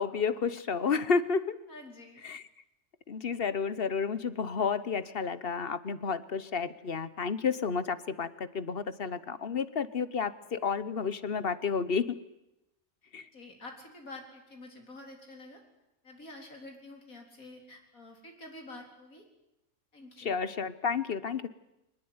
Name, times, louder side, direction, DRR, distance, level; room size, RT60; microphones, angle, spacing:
voice 1, 0.0-1.6 2.2-2.4 3.1-12.2 13.1-13.3 20.2-21.5, left 5 dB, 45° left, 15 dB, 1.1 m, -31 dB
voice 2, 1.7-2.2 13.3-15.6 16.0-19.2 19.9-20.3, left 2 dB, 80° left, 3 dB, 4.5 m, -48 dB
23.0 x 20.0 x 9.6 m, 0.89 s
omnidirectional pair, 1.4 m